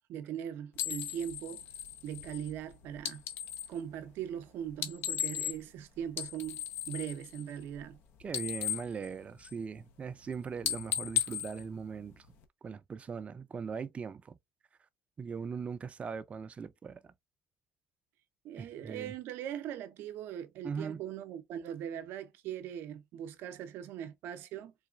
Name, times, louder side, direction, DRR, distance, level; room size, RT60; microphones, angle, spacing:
voice 1, 0.1-1.6 2.0-3.2 3.7-8.0 18.4-24.7, right 10 dB, 75° right, 0.6 m, -40 dB
sound 1, 0.7-3.8 4.7-5.8 6.1-9.8 10.1-10.3 10.6-12.4, left 10 dB, 70° left, 0.7 m, -36 dB
voice 2, 8.2-12.3 12.6-14.4 15.2-17.1 18.6-19.1 20.6-21.0, right 6 dB, 35° right, 0.5 m, -40 dB
4.0 x 2.3 x 2.3 m
supercardioid pair, 80°, 4 cm